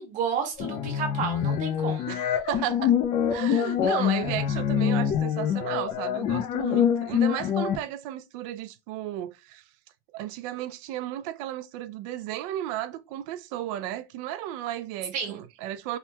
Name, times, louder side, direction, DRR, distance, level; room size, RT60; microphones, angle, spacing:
voice 1, 0.0-2.2 15.1-15.4, right 7 dB, 40° right, 1.1 m, -31 dB
sound 1, 0.6-7.8, left 8 dB, 35° left, 0.4 m, -25 dB
voice 2, 2.1-2.9 3.3-9.6 10.1-16.0, right 13 dB, 65° right, 0.4 m, -34 dB
3.5 x 2.1 x 2.8 m
cardioid pair, 155°, 19 cm